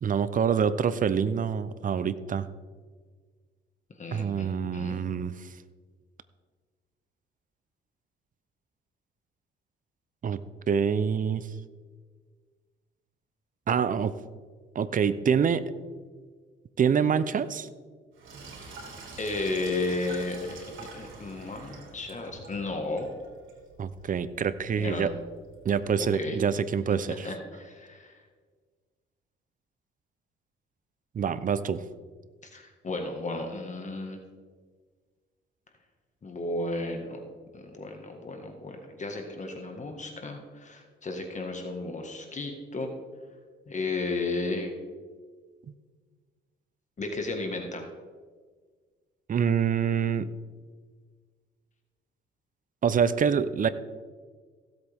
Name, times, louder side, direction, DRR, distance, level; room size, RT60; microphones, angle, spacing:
voice 1, 0.0-2.5 4.1-5.5 10.2-11.5 13.7-14.1 14.7-15.6 16.8-17.7 23.8-25.1 25.6-27.3 31.1-31.8 49.3-50.3 52.8-53.7, right 7 dB, 45° right, 14 dB, 0.7 m, -26 dB
voice 2, 4.0-5.0 18.6-18.8 19.2-23.1 24.8-25.1 26.0-26.4 27.1-28.2 32.4-34.2 36.2-37.2 37.5-42.9 43.7-44.7 47.0-47.8, left 2 dB, 35° left, 3 dB, 1.7 m, -34 dB
Sink (filling or washing), 18.1-26.0, right 3 dB, 90° right, 3.2 m, -47 dB
16.0 x 8.0 x 3.6 m, 1.5 s
cardioid pair, 90°, 20 cm